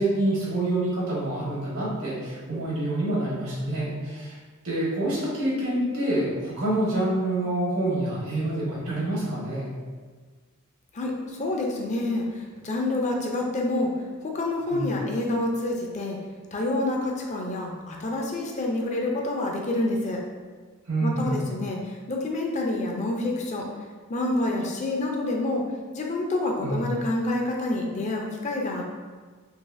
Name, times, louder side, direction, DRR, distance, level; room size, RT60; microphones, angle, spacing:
voice 1, 0.0-4.4 4.6-9.7 14.7-14.9 20.9-21.4 26.6-26.8, right 1 dB, 80° right, -7 dB, 1.4 m, -27 dB
voice 2, 10.9-13.9 14.2-16.2 16.5-20.2 21.0-23.7 24.1-25.7 25.9-28.8, left 2 dB, 35° left, 0 dB, 0.4 m, -28 dB
3.9 x 3.0 x 2.5 m, 1.5 s
head